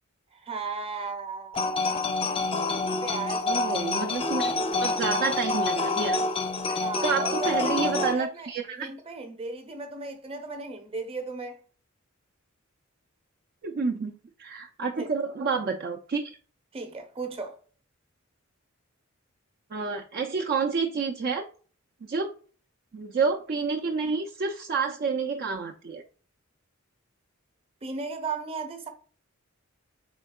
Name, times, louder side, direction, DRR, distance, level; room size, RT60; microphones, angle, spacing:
voice 1, 0.3-2.0 3.0-3.9 6.8-11.6 15.0-15.1 16.7-17.6 27.8-28.9, right 4 dB, 25° right, 0.7 m, -36 dB
sound 1, 1.5-8.1, left 3 dB, 25° left, 0.5 m, -27 dB
voice 2, 3.5-4.5 4.8-6.2 6.7-8.9 13.6-14.1 14.4-16.4 19.7-21.5 22.0-22.3 22.9-26.0, right 4 dB, 50° right, 0.4 m, -29 dB
4.4 x 3.6 x 2.3 m
head